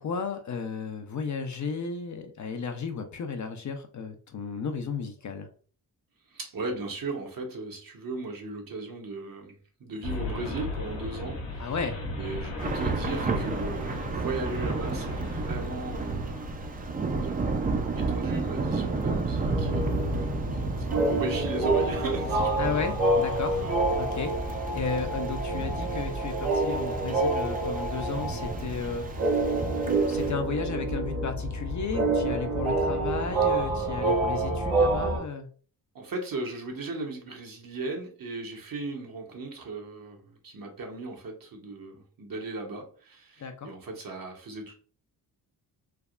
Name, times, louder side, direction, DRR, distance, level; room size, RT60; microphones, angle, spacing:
voice 1, 0.0-5.5 11.6-12.0 22.6-23.6 24.0-24.3 24.7-29.0 30.1-35.5 43.4-43.7, left 5 dB, 45° left, 0.5 m, -34 dB
voice 2, 6.3-11.7 12.2-16.5 17.1-17.4 17.9-22.8 23.6-23.8 35.9-44.7, right 2 dB, 50° right, 0.9 m, -37 dB
sound 1, 10.0-16.9, left 2 dB, 80° left, 1.1 m, -36 dB
Thunder / Rain, 12.6-30.3, right 4 dB, 20° right, 0.4 m, -33 dB
sound 2, 19.4-35.2, right 2 dB, 80° right, 1.4 m, -27 dB
3.4 x 2.0 x 2.4 m
cardioid pair, 55°, 43 cm